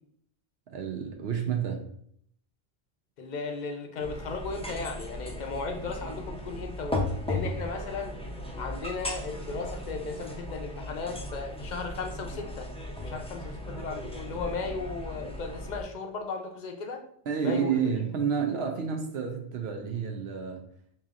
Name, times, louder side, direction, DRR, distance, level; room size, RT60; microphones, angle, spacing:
voice 1, 0.7-1.9 17.3-20.7, right 7 dB, 75° right, 3 dB, 0.8 m, -30 dB
voice 2, 3.2-8.1 8.6-12.7 13.0-17.0 17.4-17.8, left 4 dB, 50° left, 4 dB, 0.6 m, -36 dB
sound 1, 4.0-15.8, left 1 dB, 10° left, 0.4 m, -36 dB
4.9 x 2.8 x 2.4 m, 0.65 s
omnidirectional pair, 1.1 m